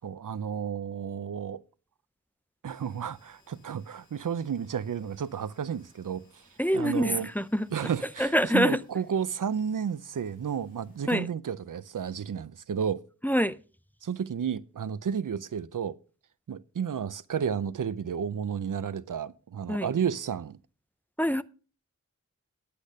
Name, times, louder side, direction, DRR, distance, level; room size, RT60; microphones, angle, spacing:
voice 1, 0.0-1.6 2.6-6.5 6.7-7.3 7.7-13.0 14.0-16.0 16.5-20.6, right 7 dB, 90° right, 0.5 m, -32 dB
sound 1, 2.7-11.1, left 1 dB, 25° left, 6.5 m, -61 dB
voice 2, 6.6-7.7 8.2-8.8 11.1-11.3 13.2-13.6 19.7-19.9 21.2-21.4, equal, 5° left, 0.6 m, -25 dB
10.0 x 8.4 x 5.3 m
wide cardioid pair, 50°, 31 cm